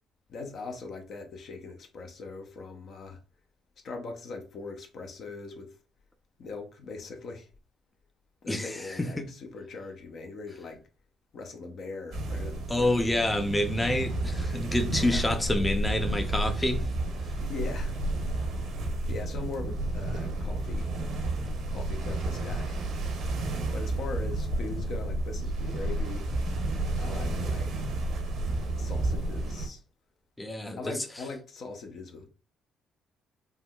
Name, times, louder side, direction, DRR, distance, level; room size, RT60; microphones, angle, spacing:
voice 1, 0.3-3.2 3.8-5.8 6.4-7.5 8.4-10.8 11.3-13.4 14.8-15.3 17.4-17.9 19.0-20.9 21.7-22.8 23.7-26.3 27.0-27.7 28.8-29.8 30.8-32.3, left 3 dB, 60° left, 0.6 m, -41 dB
voice 2, 8.5-9.3 12.7-16.9 30.4-30.9, left 1 dB, 15° left, 0.5 m, -28 dB
sound 1, 12.1-29.7, right 2 dB, 70° right, 0.7 m, -31 dB
3.5 x 2.2 x 2.3 m
hypercardioid pair, 55°, 0 cm